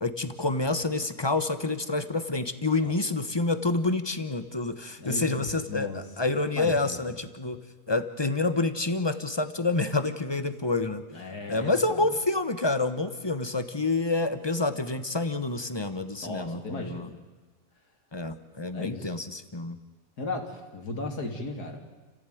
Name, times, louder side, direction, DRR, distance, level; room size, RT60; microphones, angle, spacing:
voice 1, 0.0-7.6 7.9-11.0 11.5-17.1 18.1-19.8, left 3 dB, 20° left, 11 dB, 1.1 m, -28 dB
voice 2, 5.0-6.0 6.5-7.0 11.1-12.1 16.2-17.1 18.7-19.1 20.2-21.8, left 2 dB, 85° left, 3 dB, 3.4 m, -36 dB
29.5 x 15.5 x 9.3 m, 1.3 s
omnidirectional pair, 1.6 m